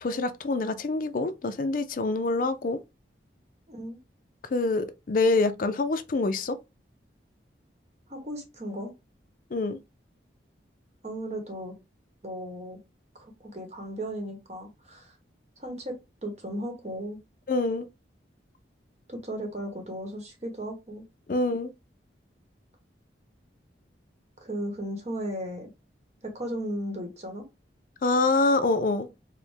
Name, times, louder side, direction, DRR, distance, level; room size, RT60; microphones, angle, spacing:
voice 1, 0.0-2.8 4.5-6.6 9.5-9.8 17.5-17.8 21.3-21.7 28.0-29.1, left 3 dB, 45° left, 0.4 m, -25 dB
voice 2, 3.7-4.0 8.1-8.9 11.0-11.7 12.2-12.8 13.2-15.1 15.6-17.2 19.1-21.0 24.4-25.7 26.2-27.4, right 1 dB, 35° right, 1.0 m, -36 dB
4.4 x 2.1 x 3.3 m
head